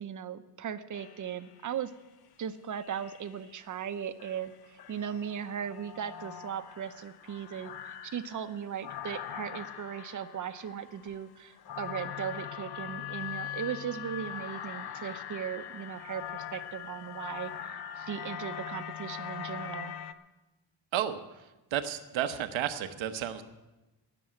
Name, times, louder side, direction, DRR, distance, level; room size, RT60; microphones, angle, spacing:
voice 1, 0.0-1.9 2.4-19.9, right 8 dB, 40° right, 11 dB, 0.8 m, -38 dB
sound 1, 0.9-1.7 2.7-3.5 4.2-20.1, left 10 dB, 55° left, 0.8 m, -42 dB
voice 2, 21.7-23.4, right 10 dB, 85° right, 9 dB, 1.1 m, -32 dB
18.5 x 7.0 x 7.6 m, 1.1 s
cardioid pair, 145°, 45 cm